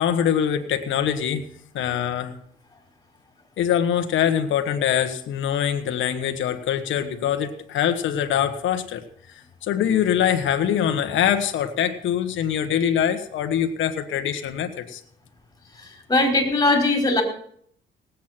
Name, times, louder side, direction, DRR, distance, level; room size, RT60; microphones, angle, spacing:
voice 1, 0.0-1.4 1.7-2.3 3.6-9.0 9.6-15.0, left 9 dB, 75° left, 7 dB, 1.4 m, -23 dB
voice 2, 15.8-17.2, left 2 dB, 20° left, 3 dB, 4.8 m, -20 dB
18.0 x 8.4 x 5.9 m, 0.63 s
cardioid pair, 90°, 20 cm